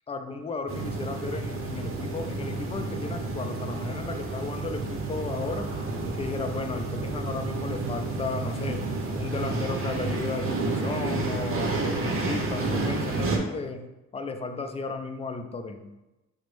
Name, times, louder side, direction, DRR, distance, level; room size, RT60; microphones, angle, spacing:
voice 1, 0.1-5.7 6.2-8.8 9.2-15.9, left 4 dB, 20° left, 6 dB, 0.4 m, -34 dB
sound 1, 0.7-13.4, right 3 dB, 45° right, 0.7 m, -30 dB
6.0 x 2.1 x 3.0 m, 1.0 s
cardioid pair, 90°, 30 cm